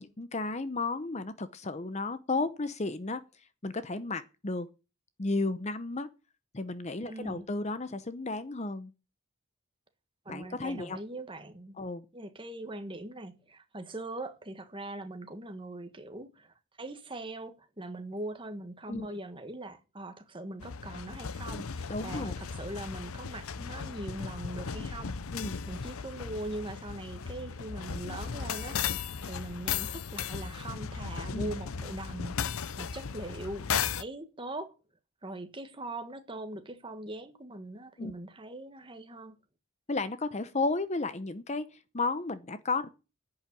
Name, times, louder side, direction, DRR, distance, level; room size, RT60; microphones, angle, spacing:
voice 1, 0.0-4.7 5.2-6.1 6.5-8.9 10.3-11.0 11.8-12.1 18.9-19.1 21.9-22.3 25.3-25.6 31.3-31.5 38.0-38.1 39.9-42.9, left 3 dB, 30° left, 0.7 m, -33 dB
voice 2, 7.1-7.4 10.2-11.7 12.1-16.5 16.8-25.1 25.7-28.8 29.3-34.7 35.2-39.4, right 1 dB, 20° right, 1.6 m, -41 dB
sound 1, 20.6-34.0, left 6 dB, 70° left, 0.7 m, -36 dB
10.5 x 8.6 x 8.5 m
head